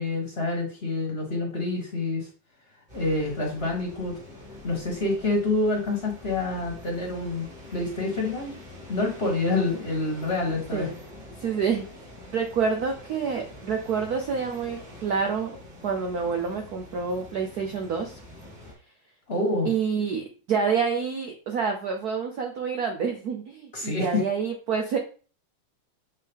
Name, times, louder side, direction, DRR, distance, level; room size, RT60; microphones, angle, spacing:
voice 1, 0.0-2.3 2.9-4.2 4.6-8.5 8.9-10.9 19.3-19.7 23.7-24.2, left 2 dB, 35° left, 0 dB, 1.3 m, -27 dB
sound 1, 2.9-18.7, left 1 dB, 25° right, 2.2 m, -45 dB
voice 2, 11.4-11.8 12.3-15.6 15.8-18.2 19.6-25.0, right 6 dB, 65° right, 3 dB, 0.9 m, -28 dB
7.4 x 3.7 x 3.5 m, 0.38 s
omnidirectional pair, 2.4 m